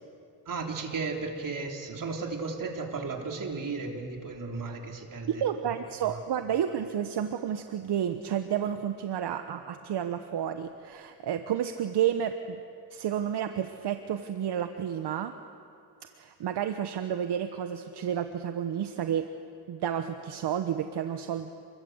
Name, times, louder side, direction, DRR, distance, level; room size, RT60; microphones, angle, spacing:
voice 1, 0.4-5.4 6.1-6.2, right 4 dB, 50° right, 2 dB, 3.5 m, -35 dB
voice 2, 5.3-12.6 12.9-15.3 16.2-19.3 19.7-21.5, right 9 dB, 75° right, 8 dB, 1.2 m, -31 dB
28.0 x 22.5 x 8.0 m, 2.6 s
cardioid pair, 100°, 41 cm